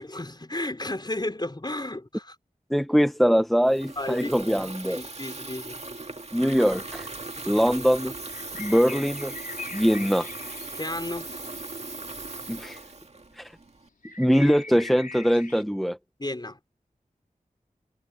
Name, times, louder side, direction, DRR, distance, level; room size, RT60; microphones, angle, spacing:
voice 1, 0.0-2.4 4.0-4.3 4.8-5.8 10.7-11.4 16.2-16.6, left 1 dB, 30° left, 5.6 m, -33 dB
voice 2, 2.7-5.0 6.3-7.1 7.5-8.1 8.6-9.3 9.7-10.3 12.5-12.8 13.3-13.5 14.2-16.0, equal, ahead, 0.9 m, -22 dB
Water tap faucet / Fill (with liquid), 3.6-13.9, right 3 dB, 50° right, 2.0 m, -38 dB
sound 1, 8.3-11.3 14.0-15.6, left 3 dB, 70° left, 4.1 m, -41 dB
wide cardioid pair, 50°, 15 cm